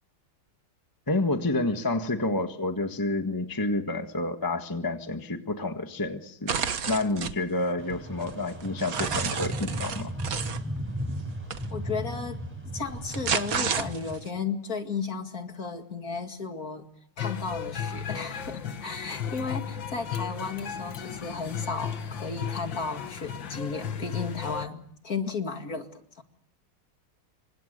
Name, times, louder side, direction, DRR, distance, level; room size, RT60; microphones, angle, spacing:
voice 1, 1.1-6.6 6.8-10.1, left 2 dB, 10° left, 6 dB, 1.4 m, -29 dB
sound 1, 6.5-7.4 7.9-10.6 11.5-11.7 12.9-14.3, right 6 dB, 45° right, 1.6 m, -31 dB
sound 2, 7.8-14.2, equal, 5° right, 7.0 m, -36 dB
voice 2, 11.7-12.4 12.7-16.9 17.2-26.2, left 4 dB, 45° left, 6 dB, 2.6 m, -34 dB
sound 3, 17.2-24.7, left 7 dB, 65° left, 2.2 m, -35 dB
28.5 x 25.5 x 6.7 m, 0.64 s
omnidirectional pair, 2.3 m